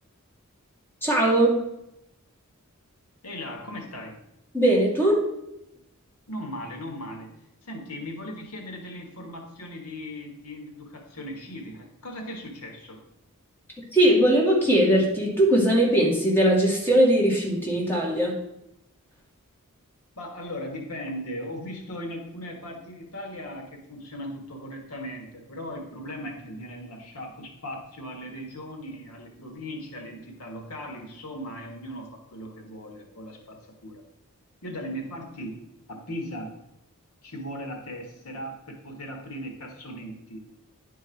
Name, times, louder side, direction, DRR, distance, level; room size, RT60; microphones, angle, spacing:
voice 1, 1.0-1.6 4.5-5.3 13.9-18.4, right 1 dB, 10° left, -4 dB, 2.2 m, -20 dB
voice 2, 3.2-4.2 6.3-7.3 7.6-13.0 20.2-34.0 34.6-35.6 35.9-36.6 37.2-40.4, equal, 85° left, 3 dB, 1.5 m, -38 dB
10.0 x 4.6 x 4.5 m, 0.82 s
head